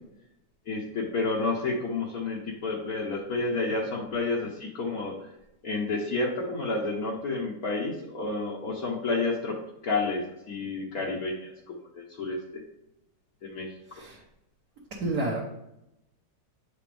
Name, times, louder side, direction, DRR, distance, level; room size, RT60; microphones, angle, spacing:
voice 1, 0.7-5.3 5.6-9.6 9.8-12.6 13.4-14.0, left 3 dB, 60° left, -3 dB, 1.4 m, -30 dB
voice 2, 13.9-14.2 15.0-15.4, right 2 dB, 60° right, -4 dB, 1.6 m, -29 dB
8.1 x 5.0 x 3.4 m, 0.86 s
omnidirectional pair, 1.8 m